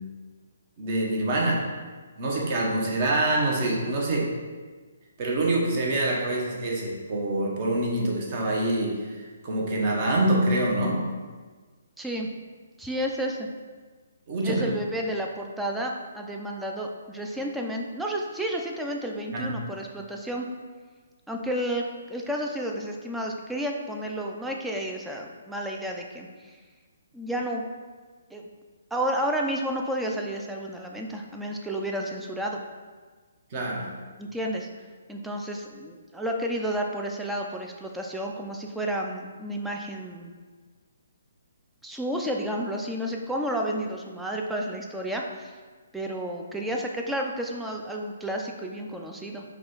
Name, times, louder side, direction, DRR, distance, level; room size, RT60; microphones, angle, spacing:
voice 1, 0.8-1.6 2.2-4.3 5.2-11.0 14.3-14.6 19.3-19.5 33.5-33.9, right 1 dB, 40° right, -2 dB, 0.9 m, -25 dB
voice 2, 12.0-12.3 12.8-13.5 14.4-20.5 21.3-26.6 27.1-27.6 28.3-28.4 28.9-32.6 34.2-34.7 35.1-40.3 41.8-45.6 45.9-49.4, right 1 dB, 5° right, 0 dB, 0.4 m, -31 dB
4.7 x 2.3 x 3.9 m, 1.4 s
figure-of-eight pair, 140°, 0 cm